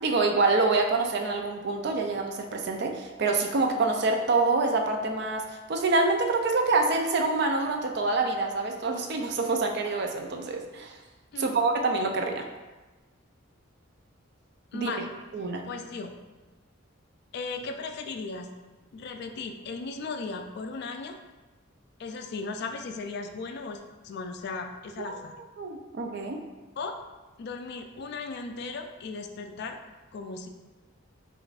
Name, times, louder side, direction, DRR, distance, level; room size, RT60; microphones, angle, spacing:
voice 1, 0.0-11.0 11.4-12.5 14.7-15.0 15.3-15.7 25.0-25.2 25.6-26.4, right 3 dB, 55° right, 3 dB, 0.4 m, -26 dB
voice 2, 14.7-15.1 15.6-16.1 17.3-18.5 18.9-21.2 22.0-25.3 26.8-27.0 27.4-29.8 30.1-30.5, left 4 dB, 55° left, 5 dB, 0.3 m, -36 dB
5.3 x 2.5 x 2.4 m, 1.2 s
head